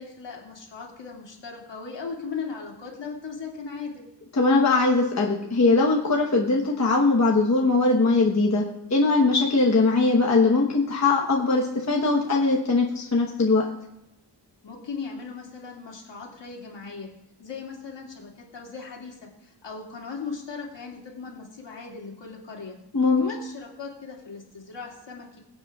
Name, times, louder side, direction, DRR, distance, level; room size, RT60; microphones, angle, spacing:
voice 1, 0.0-4.0 14.6-17.1 17.4-22.8 23.2-25.4, left 5 dB, 70° left, -1 dB, 2.5 m, -38 dB
voice 2, 4.3-8.6 8.9-13.6 22.9-23.3, left 3 dB, 40° left, -1 dB, 1.1 m, -21 dB
22.5 x 7.9 x 2.4 m, 0.87 s
wide cardioid pair, 165°, 44 cm